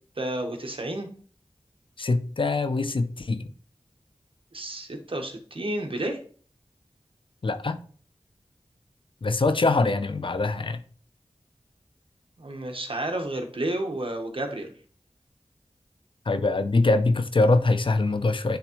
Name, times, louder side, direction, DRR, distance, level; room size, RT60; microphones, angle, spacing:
voice 1, 0.2-1.1 4.5-6.2 12.4-14.7, right 1 dB, 60° right, 1.2 m, -31 dB
voice 2, 2.0-3.5 7.4-7.8 9.2-10.8 16.3-18.6, left 3 dB, 55° left, 0.5 m, -23 dB
10.0 x 3.5 x 3.1 m
wide cardioid pair, 60°, 10 cm